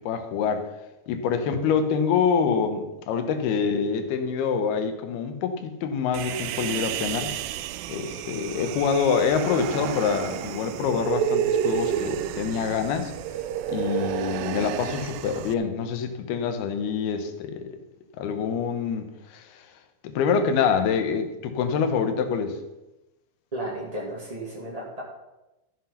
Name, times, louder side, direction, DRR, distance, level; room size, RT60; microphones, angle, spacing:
voice 1, 0.1-0.7 1.1-7.4 7.9-13.1 13.7-17.7 18.2-19.7 20.0-22.6, left 6 dB, 80° left, 7 dB, 3.1 m, -26 dB
Human voice, 6.1-15.5, right 10 dB, 80° right, 2.0 m, -30 dB
voice 2, 23.5-25.0, right 1 dB, 15° right, -5 dB, 1.4 m, -33 dB
13.5 x 7.8 x 5.8 m, 0.99 s
omnidirectional pair, 4.5 m